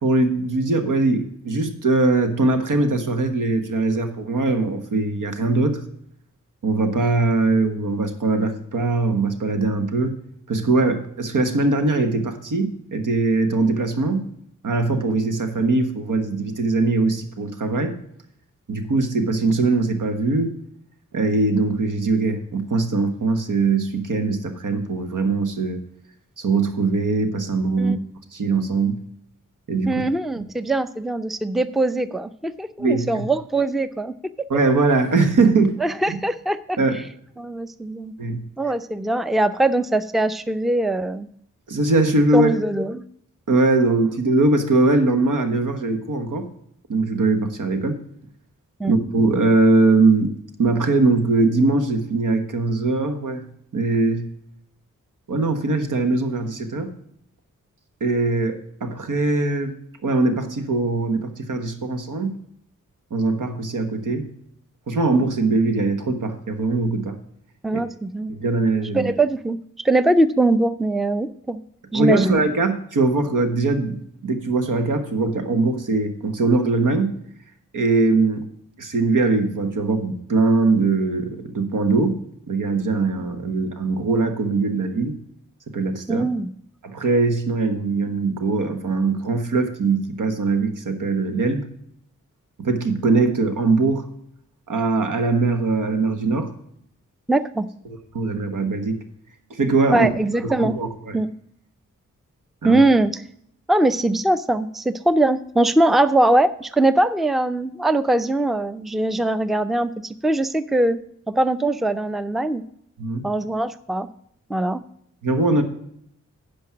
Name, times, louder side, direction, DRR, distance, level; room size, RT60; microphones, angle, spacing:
voice 1, 0.0-5.8 6.6-10.2 10.5-14.2 14.6-18.0 18.7-20.5 21.1-25.8 26.4-28.0 28.3-29.0 29.7-29.9 32.8-33.3 34.5-35.8 36.1-36.2 36.8-37.0 38.2-38.4 41.7-42.5 43.5-46.5 46.9-48.0 48.9-50.3 50.6-53.4 53.7-54.3 55.3-56.9 58.0-59.8 60.0-62.3 63.1-64.3 64.9-67.2 68.3-69.1 71.9-77.1 77.7-78.5 78.8-82.2 82.5-85.2 85.7-86.2 86.8-91.7 92.6-94.1 94.7-96.5 97.8-99.0 99.5-100.1 100.4-101.2 102.6-102.8 113.0-113.2 115.2-115.6, right 3 dB, 75° right, 8 dB, 1.4 m, -21 dB
voice 2, 29.9-34.5 35.8-36.8 37.4-38.1 38.6-41.3 42.3-43.0 48.8-49.0 67.6-68.3 68.9-69.6 69.8-71.6 71.9-72.4 86.1-86.5 97.3-97.7 99.9-100.7 101.1-101.3 102.6-103.2 103.7-111.0 111.3-112.6 113.2-114.1 114.5-114.8, right 2 dB, ahead, 13 dB, 0.5 m, -21 dB
10.5 x 5.3 x 6.0 m, 0.69 s
cardioid pair, 45°, 32 cm